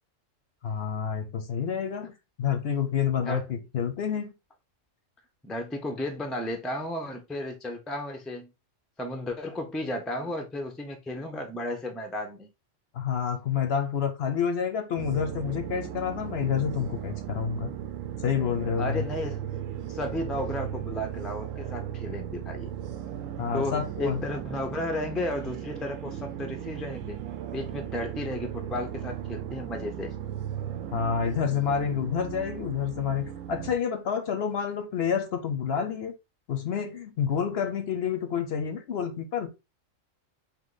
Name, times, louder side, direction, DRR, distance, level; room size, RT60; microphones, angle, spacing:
voice 1, 0.6-2.1 2.4-4.3 12.9-17.7 18.2-19.1 23.4-24.2 30.9-36.1 36.5-39.5, left 7 dB, 60° left, 0.9 m, -28 dB
voice 2, 5.4-8.5 9.0-12.5 18.8-19.4 19.9-22.7 23.5-27.2 27.5-30.1, left 1 dB, ahead, 0.5 m, -33 dB
sound 1, 15.0-33.8, right 10 dB, 85° right, 1.0 m, -37 dB
3.7 x 2.9 x 3.8 m
omnidirectional pair, 1.3 m